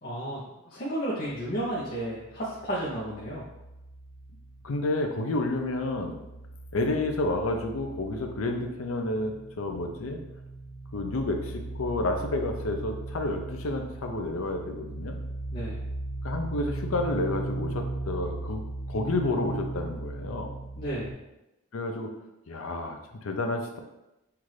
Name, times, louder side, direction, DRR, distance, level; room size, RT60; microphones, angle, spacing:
voice 1, 0.0-3.4 15.5-15.8 20.8-21.1, right 1 dB, 45° left, -6 dB, 0.7 m, -33 dB
sound 1, 1.4-5.0 5.3-21.1, right 2 dB, 60° right, 1.1 m, -38 dB
voice 2, 4.6-6.2 6.7-10.2 10.9-15.2 16.2-18.6 18.9-20.5 21.7-22.1 22.5-23.8, left 2 dB, 80° left, 4 dB, 0.6 m, -30 dB
5.7 x 2.5 x 3.2 m, 0.95 s
head